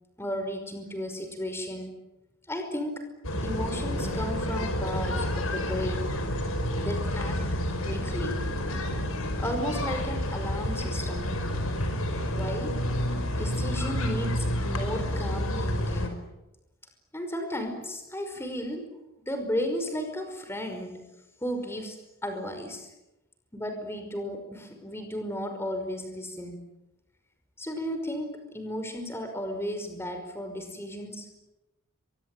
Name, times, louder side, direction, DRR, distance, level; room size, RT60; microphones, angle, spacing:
voice 1, 0.2-2.0 2.5-3.1 3.4-6.1 6.8-7.4 7.8-8.4 9.4-11.5 12.3-12.7 13.4-16.3 17.1-18.9 19.3-21.1 21.4-22.9 23.5-26.7 27.6-31.3, equal, 10° left, 6 dB, 5.4 m, -34 dB
sound 1, 3.2-16.1, left 1 dB, 85° left, 5.2 m, -29 dB
24.0 x 24.0 x 9.3 m, 0.95 s
head